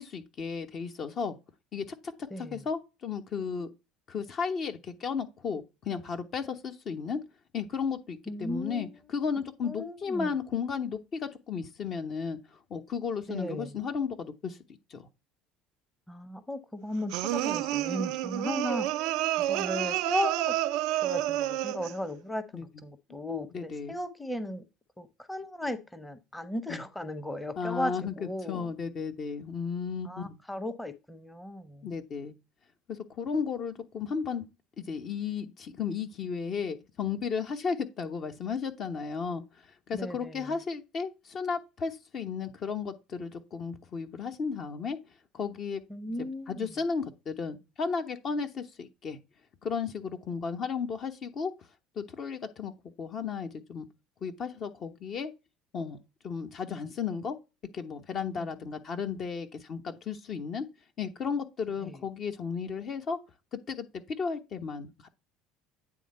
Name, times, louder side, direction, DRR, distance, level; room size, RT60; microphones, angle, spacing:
voice 1, 0.0-1.4 1.7-1.8 2.4-3.7 4.1-7.2 7.5-12.4 12.7-14.6 14.9-15.0 22.5-22.6 23.5-23.9 26.7-26.8 27.6-28.1 28.5-30.4 31.8-32.3 32.9-34.5 34.8-39.4 39.9-45.0 45.3-45.8 46.2-49.2 49.6-51.5 52.0-52.7 53.0-53.9 54.2-55.3 55.7-56.0 56.2-57.4 57.7-60.7 61.0-63.2 63.5-65.1, left 5 dB, 45° left, 1.0 m, -34 dB
voice 2, 2.3-2.7 8.3-8.9 9.6-10.3 13.3-13.7 16.1-18.9 19.4-20.6 21.0-24.6 25.0-28.7 30.0-31.9 39.9-40.5 45.9-46.7 58.4-58.5 61.8-62.0, left 1 dB, 10° left, 0.9 m, -36 dB
sound 1, 17.1-22.0, right 15 dB, 65° right, 0.4 m, -29 dB
9.1 x 3.5 x 4.3 m
hypercardioid pair, 65°, 0 cm